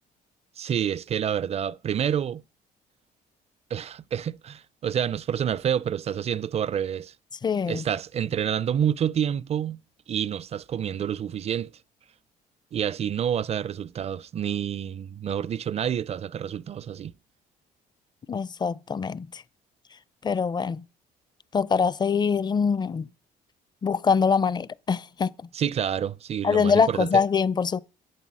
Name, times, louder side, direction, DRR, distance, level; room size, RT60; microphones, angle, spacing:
voice 1, 0.6-2.4 3.7-7.1 7.7-9.8 10.1-11.7 12.7-17.1 25.5-27.2, right 9 dB, 40° right, 0.5 m, -28 dB
voice 2, 7.4-7.8 18.3-19.4 20.2-20.8 21.5-23.1 23.8-25.3 26.4-27.8, left 6 dB, 25° left, 0.5 m, -24 dB
11.0 x 8.0 x 6.1 m
cardioid pair, 110°, 17 cm